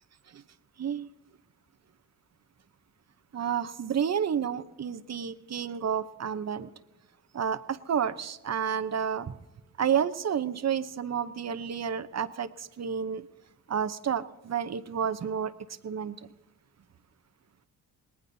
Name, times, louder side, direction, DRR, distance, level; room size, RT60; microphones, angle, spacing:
voice 1, 0.8-1.1 3.3-6.7 7.3-9.3 9.8-13.3 13.7-15.5 15.8-16.3, right 8 dB, 40° right, 12 dB, 0.8 m, -30 dB
24.5 x 19.0 x 2.7 m, 1.1 s
supercardioid pair, 65°, 39 cm